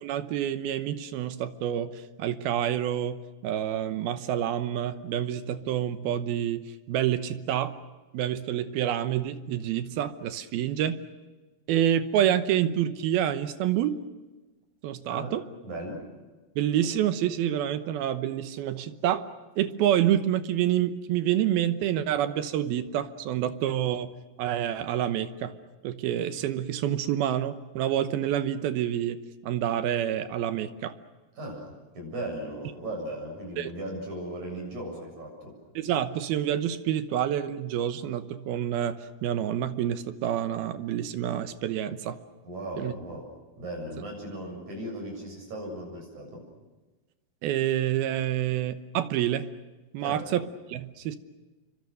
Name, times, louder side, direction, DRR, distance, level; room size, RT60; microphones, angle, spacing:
voice 1, 0.0-7.8 8.1-11.0 11.7-14.0 14.8-15.4 16.6-19.2 19.6-24.1 24.4-25.5 25.8-29.2 29.4-30.9 33.6-33.7 35.8-42.2 42.8-42.9 47.4-49.5 49.9-50.4 50.7-51.2, right 11 dB, 75° right, 11 dB, 2.8 m, -28 dB
voice 2, 15.6-16.0 31.4-31.7 31.9-35.5 42.4-46.4 50.0-50.3, right 1 dB, 50° right, 1 dB, 8.5 m, -37 dB
29.0 x 24.0 x 6.5 m, 1.2 s
omnidirectional pair, 4.5 m